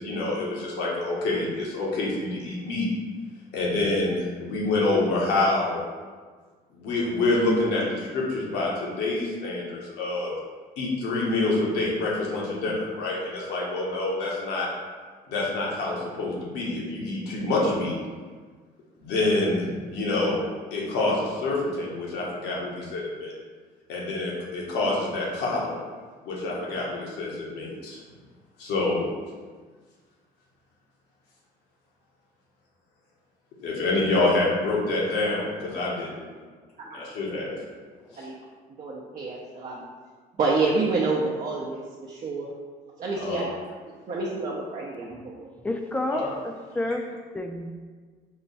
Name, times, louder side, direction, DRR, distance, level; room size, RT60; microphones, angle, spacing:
voice 1, 0.0-2.9 3.5-5.8 6.7-10.3 10.8-14.7 15.3-17.9 19.0-20.4 20.7-23.3 23.9-25.8 26.2-28.0 28.6-29.1 33.6-36.2 36.9-37.6 38.1-38.3 43.1-43.5 46.1-46.3, left 2 dB, 85° left, -4 dB, 1.1 m, -27 dB
voice 2, 38.8-39.8 40.4-42.5 43.0-43.6 43.9-45.5, right 3 dB, 45° right, -4 dB, 0.6 m, -28 dB
voice 3, 45.6-47.0 47.3-47.8, left 1 dB, 10° left, 4 dB, 0.4 m, -30 dB
4.6 x 2.2 x 4.0 m, 1.5 s
cardioid pair, 110°, 17 cm